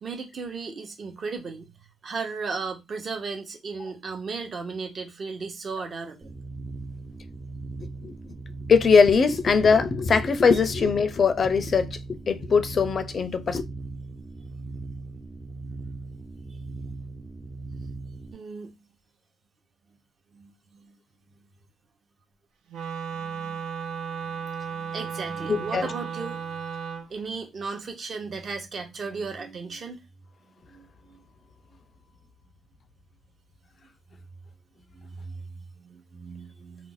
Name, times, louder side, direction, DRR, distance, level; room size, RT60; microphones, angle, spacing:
voice 1, 0.0-1.7 2.0-6.3 16.4-16.6 18.3-18.7 20.3-21.0 23.1-23.6 24.3-24.4 24.7-26.5 27.1-30.0 30.7-31.2 34.9-36.9, right 4 dB, 45° right, 0.9 m, -36 dB
sound 1, 6.2-18.3, right 3 dB, 20° right, 0.4 m, -39 dB
voice 2, 7.8-8.1 8.7-12.0 12.3-13.6 25.5-25.9, left 5 dB, 45° left, 0.5 m, -21 dB
Wind instrument woodwind instrument, 22.7-27.1, right 7 dB, 80° right, 0.6 m, -34 dB
2.5 x 2.1 x 3.9 m
cardioid pair, 90°, 0 cm